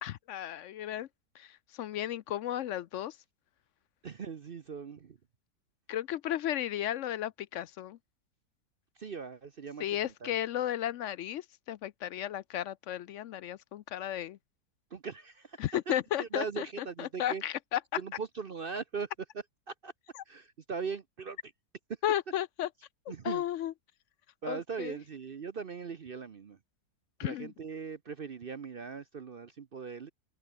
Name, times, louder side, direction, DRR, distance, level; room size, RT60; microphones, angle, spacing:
voice 1, 0.0-1.1 1.4-3.2 5.9-8.0 9.8-14.4 15.6-17.8 20.1-20.2 22.0-22.7 23.2-23.7 24.5-25.0 27.2-27.5, left 12 dB, 70° left, 0.7 m, -34 dB
voice 2, 4.0-5.2 9.0-9.8 10.2-10.3 14.9-15.6 16.2-17.4 18.0-19.1 19.7-19.9 20.3-21.4 23.1-23.4 24.4-26.6 27.2-30.1, right 5 dB, 45° right, 0.8 m, -40 dB
open air
omnidirectional pair, 1.7 m